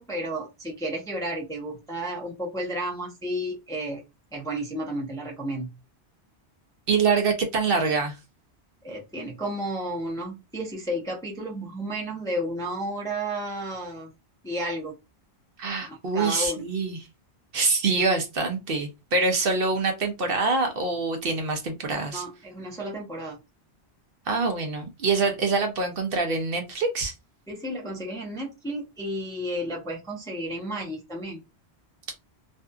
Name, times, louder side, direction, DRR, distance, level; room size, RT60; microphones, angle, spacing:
voice 1, 0.0-4.0 4.3-5.7 8.8-14.1 14.4-14.9 15.9-16.7 22.1-23.4 27.5-31.4, right 1 dB, 5° left, 0.5 m, -32 dB
voice 2, 6.9-8.2 15.6-17.0 17.5-22.2 24.3-27.1, right 4 dB, 60° right, 0.8 m, -25 dB
2.6 x 2.5 x 2.3 m
omnidirectional pair, 1.1 m